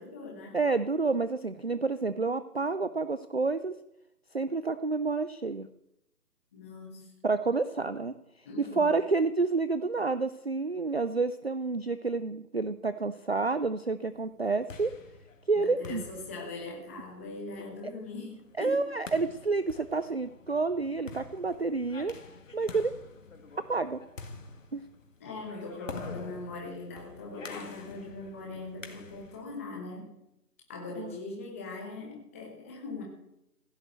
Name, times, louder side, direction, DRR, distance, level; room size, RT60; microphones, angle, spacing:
voice 1, 0.0-0.6 6.5-7.1 8.4-8.9 14.3-14.4 15.6-18.8 25.2-30.1 30.7-33.0, left 3 dB, 10° left, -1 dB, 1.1 m, -41 dB
voice 2, 0.5-3.8 4.3-5.7 7.2-8.1 8.6-14.9 15.5-16.1 18.6-22.1 22.5-22.9 23.7-24.0 24.7-24.8 31.0-31.2, right 3 dB, 40° right, 13 dB, 0.5 m, -29 dB
sound 1, 14.3-29.5, left 4 dB, 50° left, 2.0 m, -47 dB
15.5 x 7.6 x 8.1 m, 0.83 s
figure-of-eight pair, 155°, 48 cm